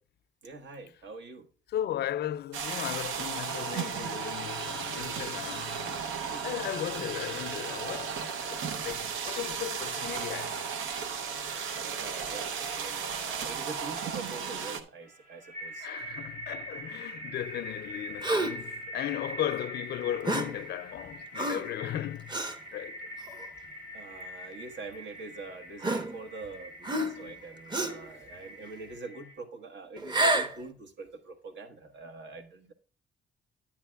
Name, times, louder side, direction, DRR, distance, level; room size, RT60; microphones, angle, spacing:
voice 1, 0.4-1.5 6.3-6.4 11.8-15.9 23.9-32.7, right 3 dB, 65° right, 1.3 m, -44 dB
voice 2, 1.7-6.1 6.4-10.7 15.8-22.3 22.7-23.1, left 11 dB, 55° left, 0.4 m, -36 dB
sound 1, 2.5-14.8, right 6 dB, 85° right, 0.7 m, -35 dB
sound 2, 15.0-29.3, equal, 45° right, 4.1 m, -43 dB
Gasp, 18.2-18.7 20.2-20.6 21.4-21.7 22.3-22.6 23.3-23.4 24.5-24.6 25.8-26.5 26.8-27.3 27.7-28.1 30.0-30.6, right 2 dB, 20° right, 0.8 m, -29 dB
10.0 x 8.7 x 2.2 m
cardioid pair, 90°, 20 cm